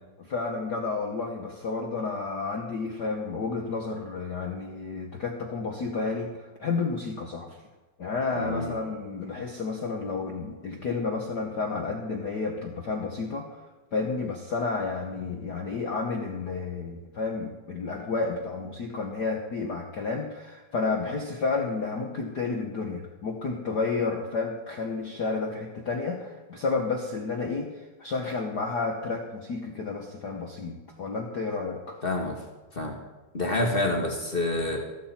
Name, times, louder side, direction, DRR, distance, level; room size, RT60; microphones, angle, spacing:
voice 1, 0.2-7.6 8.0-13.6 13.9-32.0, left 4 dB, 80° left, 2 dB, 0.9 m, -31 dB
voice 2, 8.3-8.7 32.0-32.4 32.7-33.0 33.3-34.8, left 2 dB, 50° left, 1 dB, 0.6 m, -27 dB
14.5 x 13.0 x 4.3 m, 1.2 s
omnidirectional pair, 3.5 m